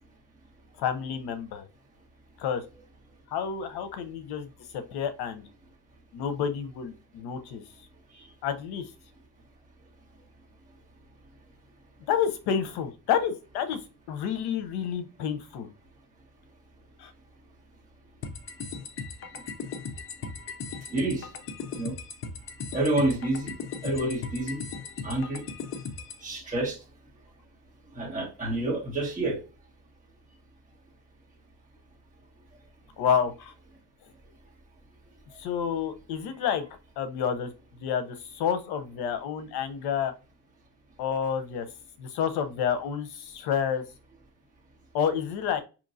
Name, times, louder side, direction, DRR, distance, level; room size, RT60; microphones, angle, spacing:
voice 1, 0.8-1.7 2.4-2.6 3.3-4.5 4.7-5.5 6.1-7.6 8.4-8.9 12.1-13.8 14.1-15.7 17.0-17.1 33.0-33.5 35.4-36.6 37.0-37.5 37.8-40.1 41.0-41.7 42.0-43.8 44.9-45.6, left 8 dB, 70° left, 0.8 m, -29 dB
sound 1, 18.2-26.2, left 5 dB, 35° left, 0.5 m, -38 dB
voice 2, 20.9-21.3 21.7-21.9 22.7-23.5 23.8-24.6 25.0-25.4 26.2-26.8 27.9-29.4, right 2 dB, 20° right, 1.5 m, -28 dB
5.2 x 2.9 x 2.6 m
cardioid pair, 155°, 40 cm